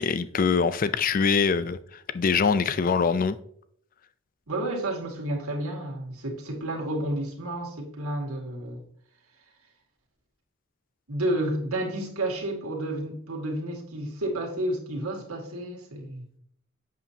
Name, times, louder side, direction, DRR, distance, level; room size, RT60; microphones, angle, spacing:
voice 1, 0.0-3.4, left 5 dB, 40° left, 0.4 m, -24 dB
voice 2, 4.5-8.8 11.1-16.2, right 1 dB, 90° right, 2.2 m, -31 dB
8.4 x 7.0 x 2.8 m
head